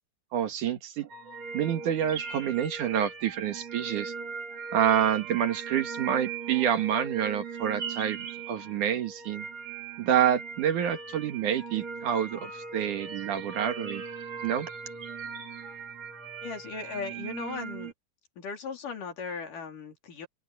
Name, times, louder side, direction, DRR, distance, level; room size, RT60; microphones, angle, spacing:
voice 1, 0.3-1.1 1.5-4.1 4.7-8.2 8.5-9.5 10.0-14.0 14.4-14.7, right 9 dB, 65° right, 2.9 m, -28 dB
sound 1, 1.1-17.9, right 5 dB, 50° right, 5.0 m, -39 dB
voice 2, 16.4-17.9 18.4-20.3, left 5 dB, 65° left, 5.1 m, -37 dB
open air
omnidirectional pair, 4.0 m